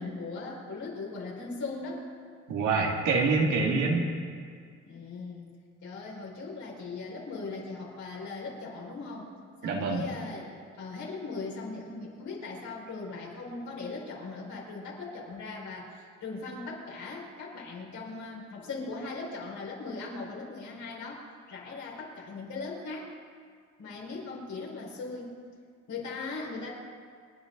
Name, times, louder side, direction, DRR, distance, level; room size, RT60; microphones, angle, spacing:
voice 1, 0.0-2.0 4.8-5.5 5.8-9.3 9.6-23.1 23.8-25.3 25.9-26.7, left 3 dB, 70° left, -3 dB, 5.3 m, -39 dB
voice 2, 2.5-4.1 9.6-10.1, right 4 dB, 90° right, -1 dB, 2.5 m, -26 dB
28.0 x 10.5 x 4.0 m, 2.1 s
cardioid pair, 90°, 30 cm